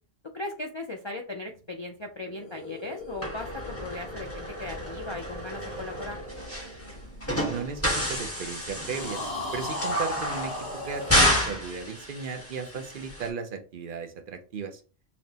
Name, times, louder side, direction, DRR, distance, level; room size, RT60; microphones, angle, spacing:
voice 1, 0.3-6.2, left 2 dB, 45° left, 2 dB, 0.3 m, -37 dB
sound 1, 2.2-7.8 8.8-11.2, left 1 dB, 65° left, 2.2 m, -37 dB
sound 2, 3.2-13.3, left 1 dB, 15° left, 1.0 m, -30 dB
voice 2, 7.3-9.2 9.5-10.5 10.8-14.8, right 5 dB, 60° right, 6 dB, 0.7 m, -35 dB
5.8 x 2.1 x 2.7 m, 0.36 s
omnidirectional pair, 1.1 m